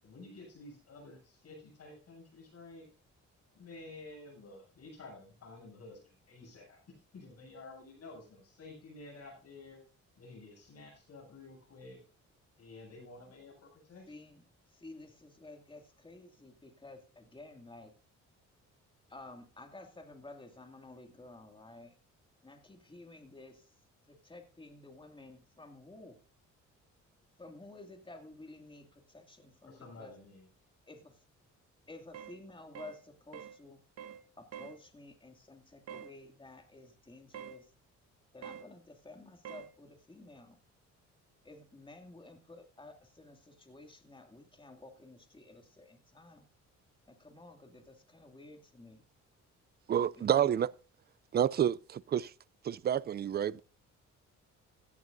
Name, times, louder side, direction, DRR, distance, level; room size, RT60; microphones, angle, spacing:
voice 1, 0.0-2.9 3.5-9.8 10.2-12.0 12.6-14.1 29.7-30.5, left 2 dB, 55° left, 7.4 m, -51 dB
voice 2, 14.1-17.9 19.1-21.9 22.4-23.8 24.1-26.2 27.4-30.1 30.9-31.2 31.9-33.8 34.4-37.7 38.3-40.6 41.4-46.5 47.1-49.0 50.2-50.6, left 2 dB, 15° left, 2.4 m, -52 dB
sound 1, 32.1-32.4 32.8-33.0 33.3-33.6 34.0-34.2 34.5-34.8 35.9-36.1 37.3-37.6 38.4-38.7 39.4-39.7, right 8 dB, 55° right, 1.2 m, -46 dB
voice 3, 49.9-50.7 51.3-52.3 52.6-53.6, right 9 dB, 35° right, 0.4 m, -29 dB
16.5 x 11.0 x 2.6 m
cardioid pair, 90°, 30 cm